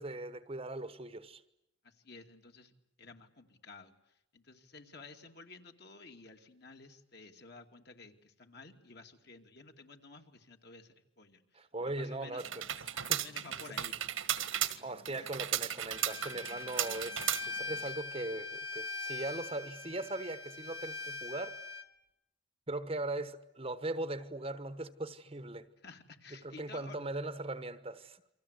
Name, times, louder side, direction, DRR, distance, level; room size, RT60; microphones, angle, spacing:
voice 1, 0.0-1.4 11.5-12.6 12.9-13.2 13.7-13.8 14.8-21.6 22.7-25.7 26.4-28.2, right 2 dB, 25° right, 1.1 m, -39 dB
voice 2, 1.8-2.7 3.0-12.4 13.0-14.0 15.1-15.3 25.8-27.0, left 3 dB, 50° left, 2.6 m, -53 dB
sound 1, 12.4-17.9, right 11 dB, 75° right, 1.7 m, -35 dB
Bowed string instrument, 15.9-21.8, left 3 dB, 25° left, 1.7 m, -42 dB
29.0 x 25.0 x 8.3 m
head